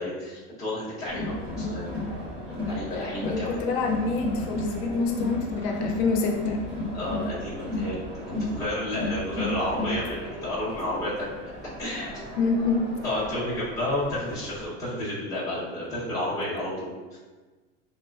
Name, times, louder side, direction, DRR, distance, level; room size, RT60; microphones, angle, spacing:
voice 1, 0.0-1.9 2.6-3.6 6.9-11.5 11.8-12.2 13.0-17.2, left 1 dB, 10° left, -11 dB, 0.8 m, -31 dB
Crowd, 1.1-14.7, left 1 dB, 30° right, 1.1 m, -33 dB
voice 2, 2.9-6.6 12.4-12.9, left 4 dB, 85° left, 1 dB, 0.5 m, -27 dB
3.0 x 2.1 x 2.3 m, 1.3 s
cardioid pair, 170°, 32 cm